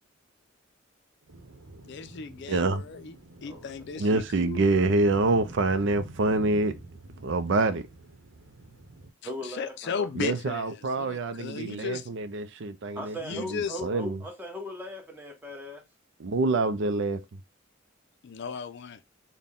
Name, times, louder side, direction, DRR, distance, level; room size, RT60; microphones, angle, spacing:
sound 1, 1.3-9.1, right 2 dB, 90° right, 0.8 m, -47 dB
voice 1, 1.8-3.1 3.4-4.7 9.4-12.1 13.2-13.8 18.2-19.0, left 6 dB, 60° left, 0.4 m, -36 dB
voice 2, 2.5-2.8 4.0-6.8 7.2-7.9 10.2-14.2 16.2-17.2, right 3 dB, 65° right, 0.5 m, -26 dB
voice 3, 9.2-10.1 12.9-15.8, equal, 10° right, 1.0 m, -38 dB
4.1 x 2.2 x 3.5 m
head